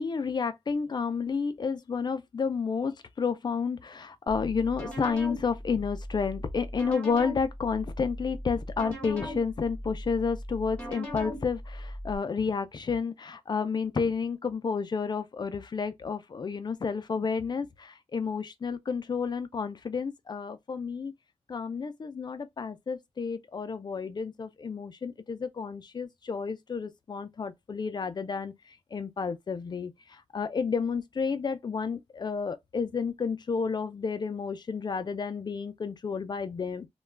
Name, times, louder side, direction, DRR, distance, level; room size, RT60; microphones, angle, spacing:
voice 1, 0.0-21.1 21.5-28.5 28.9-36.9, left 5 dB, 40° left, 0.3 m, -31 dB
sound 1, 4.3-12.2, equal, 10° left, 0.9 m, -39 dB
2.3 x 2.2 x 3.1 m
wide cardioid pair, 135°, 12 cm